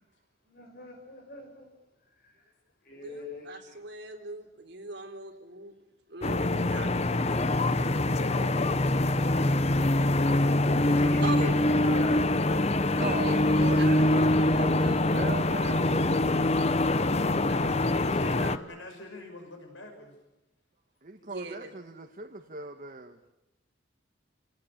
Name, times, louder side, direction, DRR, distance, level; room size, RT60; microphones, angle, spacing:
voice 1, 0.5-1.7 2.8-3.8 7.2-8.7 9.2-9.9 11.0-12.7, left 1 dB, 50° left, 3 dB, 6.6 m, -43 dB
voice 2, 2.9-5.7 6.1-7.3 11.0-11.6 13.0-15.2 17.5-18.6 21.2-21.7, right 2 dB, 60° right, 3 dB, 4.1 m, -41 dB
sound 1, 6.2-18.6, left 1 dB, 35° left, 0.9 m, -24 dB
voice 3, 13.0-16.1 21.0-23.2, right 3 dB, 45° right, 4 dB, 1.4 m, -39 dB
voice 4, 16.4-20.2, left 2 dB, 80° left, 3 dB, 5.9 m, -44 dB
29.0 x 18.0 x 9.0 m, 0.96 s
head